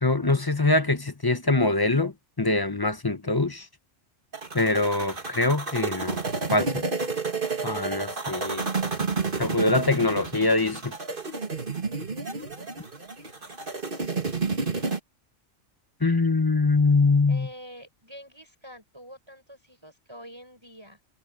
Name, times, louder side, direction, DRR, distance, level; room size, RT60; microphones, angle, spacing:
voice 1, 0.0-3.6 4.5-6.2 6.5-6.8 7.6-8.6 9.4-10.9 16.0-17.5, left 3 dB, 20° left, 0.9 m, -23 dB
sound 1, 4.3-15.0, right 4 dB, 45° right, 2.4 m, -31 dB
voice 2, 17.3-21.0, equal, 20° right, 7.2 m, -46 dB
omnidirectional pair, 1.3 m